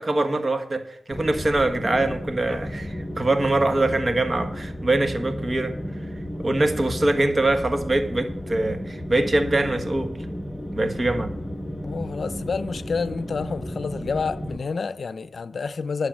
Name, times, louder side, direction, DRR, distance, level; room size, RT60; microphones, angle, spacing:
voice 1, 0.0-5.7 6.4-10.1 10.7-11.3, right 2 dB, 40° right, 1.4 m, -23 dB
sound 1, 1.1-14.6, equal, 10° left, 1.2 m, -33 dB
voice 2, 11.8-16.1, left 4 dB, 65° left, 0.5 m, -29 dB
11.5 x 6.7 x 7.3 m
cardioid pair, 55°, 0 cm